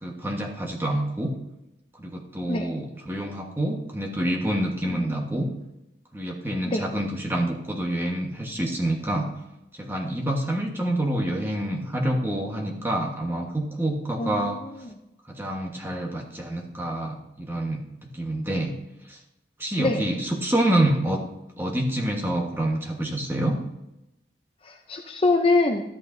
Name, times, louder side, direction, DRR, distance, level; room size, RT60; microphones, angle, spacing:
voice 1, 0.0-1.3 2.0-5.5 6.1-9.3 9.8-14.6 15.3-18.7 19.1-19.2 19.6-21.2 21.6-23.6, right 1 dB, 15° right, 0 dB, 1.3 m, -27 dB
voice 2, 14.2-14.5 19.8-20.0 24.7-25.8, left 2 dB, 30° left, 3 dB, 0.6 m, -24 dB
12.5 x 8.6 x 2.7 m, 0.91 s
head